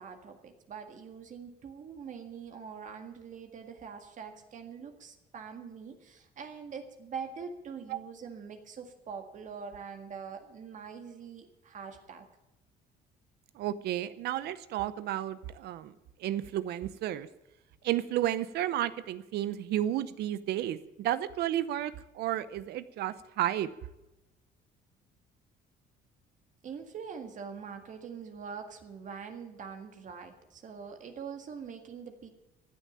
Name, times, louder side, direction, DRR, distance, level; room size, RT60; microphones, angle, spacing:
voice 1, 0.0-12.3 26.6-32.3, right 6 dB, 50° right, 5 dB, 1.8 m, -44 dB
voice 2, 13.5-15.9 16.2-17.3 17.8-23.7, right 12 dB, 75° right, 15 dB, 0.8 m, -32 dB
15.0 x 8.4 x 8.9 m, 0.95 s
cardioid pair, 110°, 17 cm